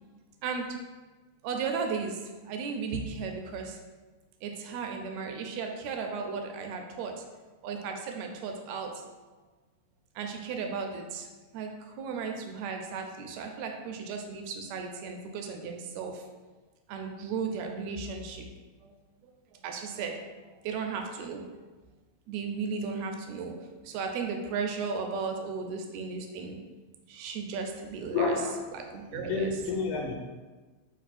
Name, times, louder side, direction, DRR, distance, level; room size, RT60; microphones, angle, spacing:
voice 1, 1.4-2.2 2.5-3.8 4.4-7.1 7.6-9.1 10.2-11.3 11.5-11.7 12.0-16.2 16.9-18.5 18.8-18.9 19.6-20.2 20.6-21.4 22.3-26.6 27.1-28.3 28.7-29.5, right 5 dB, 80° right, 4 dB, 1.7 m, -35 dB
voice 2, 28.1-28.6 29.1-30.1, left 4 dB, 80° left, -1 dB, 1.9 m, -29 dB
4.5 x 2.9 x 4.1 m, 1.3 s
omnidirectional pair, 3.4 m